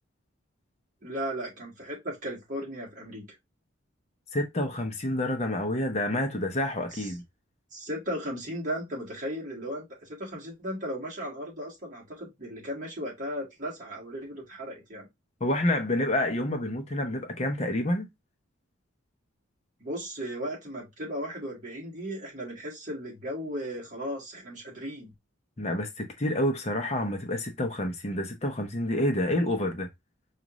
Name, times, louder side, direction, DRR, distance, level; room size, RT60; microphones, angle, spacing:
voice 1, 1.0-3.3 6.9-7.1 7.7-15.1 19.8-25.1, equal, 40° right, 1.7 m, -36 dB
voice 2, 4.3-7.2 15.4-18.1 25.6-29.9, left 1 dB, 30° left, 0.7 m, -28 dB
5.0 x 2.5 x 3.0 m
head